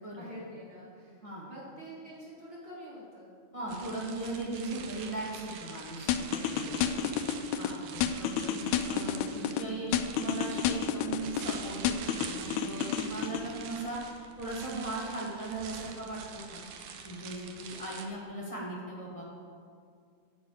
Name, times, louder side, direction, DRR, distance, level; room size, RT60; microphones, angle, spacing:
voice 1, 0.0-3.4 6.6-7.0, equal, 40° right, -9 dB, 3.1 m, -47 dB
voice 2, 3.5-6.7 7.5-14.0 14.4-16.7 17.0-19.2, right 2 dB, 20° left, -4 dB, 1.0 m, -38 dB
sound 1, 3.7-18.1, right 6 dB, 75° right, 2.2 m, -45 dB
sound 2, 6.1-7.7 8.0-9.6 9.9-11.5 11.8-13.4, left 10 dB, 80° left, 2.0 m, -30 dB
12.0 x 4.8 x 8.6 m, 2.3 s
omnidirectional pair, 3.6 m